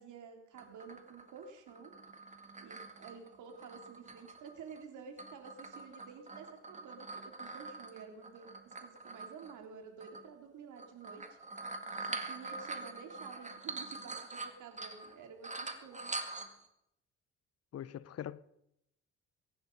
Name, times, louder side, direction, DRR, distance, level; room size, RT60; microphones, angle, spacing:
voice 1, 0.0-1.9 2.6-11.4 12.0-16.1, right 6 dB, 80° right, 3.5 m, -51 dB
sound 1, 0.6-4.8 5.2-9.6 10.0-10.3 10.8-15.2 15.4-16.7, right 3 dB, 25° right, 2.0 m, -44 dB
voice 2, 17.7-18.4, left 10 dB, 55° left, 0.7 m, -42 dB
23.0 x 10.5 x 5.4 m
cardioid pair, 90°, 30 cm